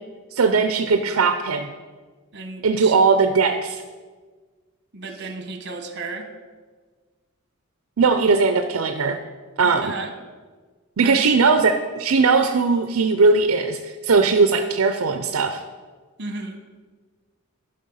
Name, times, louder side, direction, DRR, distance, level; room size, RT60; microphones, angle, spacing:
voice 1, 0.3-1.7 2.6-3.8 8.0-9.2 9.6-9.9 11.0-15.6, right 4 dB, 80° right, 7 dB, 0.5 m, -19 dB
voice 2, 2.3-3.0 4.9-6.3 9.6-10.1 11.0-11.5 16.2-16.6, right 3 dB, 55° right, 6 dB, 1.2 m, -34 dB
11.5 x 5.5 x 5.6 m, 1.4 s
head